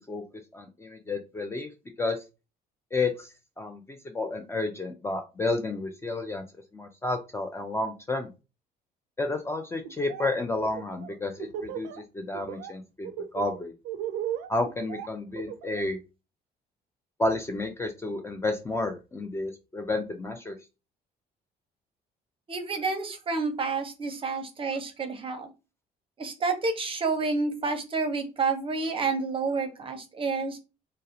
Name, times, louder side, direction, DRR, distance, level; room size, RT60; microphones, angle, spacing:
voice 1, 0.5-1.7 2.0-2.2 2.9-3.3 3.6-6.4 6.7-8.3 9.2-13.1 13.3-13.7 14.5-16.0 17.2-20.6, left 2 dB, 15° left, 5 dB, 0.3 m, -31 dB
Laughter, 9.8-10.3 10.6-12.0 12.3-12.7 13.0-15.9, right 10 dB, 85° right, 0.4 m, -36 dB
voice 2, 22.5-25.5 26.2-30.6, right 4 dB, 30° right, 7 dB, 0.6 m, -29 dB
2.3 x 2.0 x 2.7 m, 0.28 s
cardioid pair, 110°, 17 cm